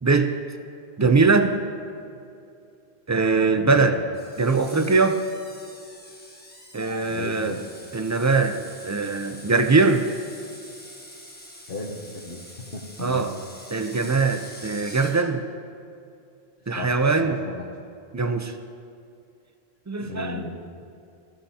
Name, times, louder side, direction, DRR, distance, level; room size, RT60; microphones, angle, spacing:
voice 1, 0.0-0.3 1.0-1.6 3.1-4.0 4.4-5.2 6.7-7.6 7.9-8.6 8.8-10.1 13.0-13.3 13.7-15.4 16.7-17.4 18.1-18.5 19.9-20.4, right 4 dB, 30° right, 7 dB, 0.3 m, -21 dB
voice 2, 3.6-3.9 7.0-7.6 11.7-12.5 12.7-13.3 16.7-17.0 17.2-17.6 20.0-20.8, left 3 dB, 55° left, -4 dB, 1.2 m, -35 dB
Screech, 4.1-15.2, left 1 dB, 10° left, 1.2 m, -45 dB
17.0 x 14.5 x 2.8 m, 2.5 s
omnidirectional pair, 1.1 m